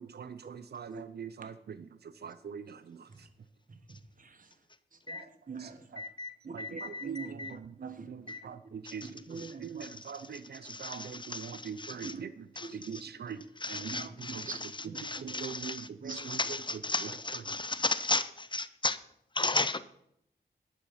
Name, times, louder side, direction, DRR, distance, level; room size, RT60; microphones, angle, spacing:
voice 1, 0.1-1.5 2.2-2.6 6.5-7.4 8.1-8.6 8.9-9.1 9.6-12.3 12.9-13.4 13.7-14.4 15.0-15.1 15.4-16.6 17.0-17.1, right 7 dB, 70° right, 13 dB, 0.5 m, -42 dB
voice 2, 5.1-5.7 6.4-8.1 9.0-9.8 12.0-12.2 12.6-12.7 13.7-14.6 14.9-15.5 16.0-16.3, right 5 dB, 50° right, 8 dB, 1.2 m, -43 dB
voice 3, 6.0-6.3 6.6-7.5 8.3-8.4 10.7-11.5 11.8-12.1 12.6-12.7 13.6-19.0 19.4-19.8, left 3 dB, 25° left, 14 dB, 0.5 m, -34 dB
10.0 x 6.6 x 5.6 m, 0.75 s
cardioid pair, 70°, 17 cm